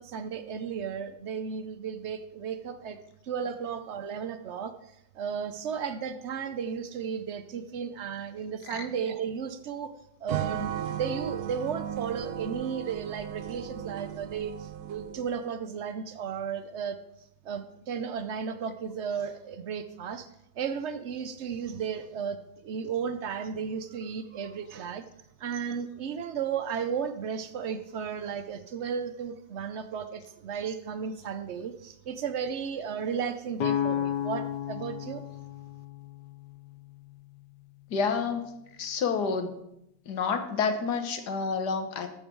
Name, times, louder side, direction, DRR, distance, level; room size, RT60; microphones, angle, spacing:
voice 1, 0.0-3.0 3.2-4.7 5.1-9.9 10.2-17.0 17.4-20.3 20.6-25.0 25.4-35.2, right 7 dB, 80° right, 10 dB, 0.6 m, -34 dB
sound 1, 10.3-15.4, right 10 dB, 65° right, 1.0 m, -36 dB
sound 2, 33.6-37.4, left 10 dB, 80° left, 1.4 m, -33 dB
voice 2, 37.9-38.5 38.8-39.6 40.1-42.1, left 5 dB, 65° left, 8 dB, 1.6 m, -29 dB
13.0 x 7.4 x 4.6 m, 0.82 s
omnidirectional pair, 2.0 m